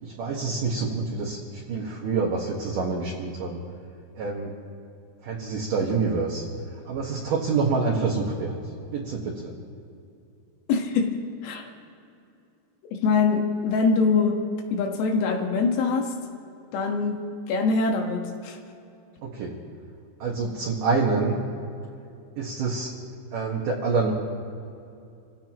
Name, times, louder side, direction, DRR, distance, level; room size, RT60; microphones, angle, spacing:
voice 1, 0.0-3.6 4.2-4.6 5.2-6.5 6.7-8.6 8.9-9.5 19.2-19.5 20.2-21.4 22.4-22.9 23.3-24.1, right 4 dB, 60° right, -2 dB, 2.4 m, -27 dB
voice 2, 10.7-11.2 11.4-11.7 12.8-14.4 14.7-16.2 16.7-18.6, left 4 dB, 85° left, 3 dB, 4.0 m, -24 dB
27.5 x 16.0 x 3.0 m, 2.6 s
omnidirectional pair, 5.4 m